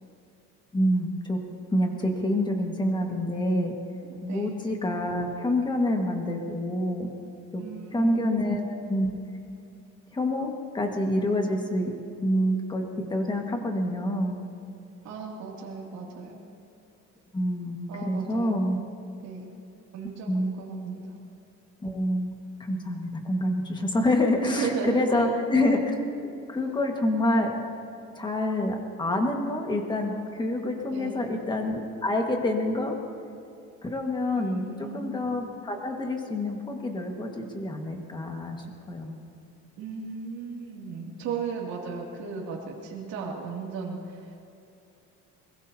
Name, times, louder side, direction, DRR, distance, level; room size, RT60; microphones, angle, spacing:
voice 1, 0.7-1.4 1.7-3.7 4.2-7.1 7.5-7.6 7.9-9.1 10.1-11.9 12.2-14.4 17.3-18.8 20.3-20.5 21.8-22.3 22.6-25.9 26.2-27.5 28.2-33.0 33.8-39.2, left 1 dB, 15° left, 2 dB, 1.6 m, -27 dB
voice 2, 4.0-4.6 7.6-8.4 15.0-16.4 17.9-18.7 19.2-19.5 19.9-21.2 24.4-25.3 30.9-31.2 34.3-35.1 39.8-44.3, right 5 dB, 75° right, -2 dB, 2.6 m, -35 dB
23.0 x 21.0 x 2.8 m, 2.7 s
cardioid pair, 170°, 29 cm